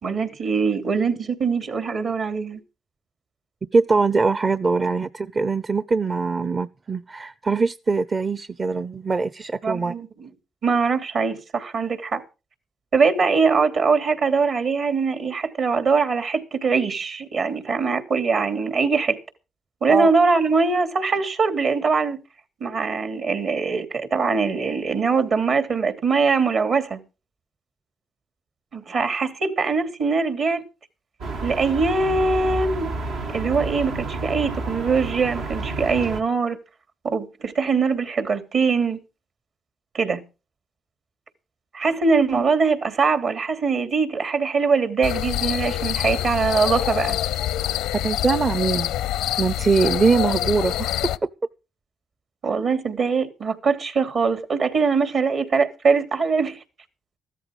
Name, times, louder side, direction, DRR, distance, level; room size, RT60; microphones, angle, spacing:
voice 1, 0.0-2.6 9.6-10.3 10.6-12.2 12.9-19.2 19.8-22.2 22.6-27.0 28.7-30.6 31.4-32.9 33.3-36.6 37.0-39.0 39.9-40.2 41.7-47.2 52.4-56.6, right 4 dB, 65° right, 3.1 m, -22 dB
voice 2, 3.7-9.9 19.9-20.1 48.0-48.9 49.4-50.9, right 4 dB, 40° right, 0.7 m, -22 dB
sound 1, 31.2-36.2, right 3 dB, 90° right, 2.4 m, -30 dB
sound 2, 45.0-51.2, left 13 dB, 90° left, 0.7 m, -26 dB
15.0 x 13.5 x 4.9 m
supercardioid pair, 60°, 0 cm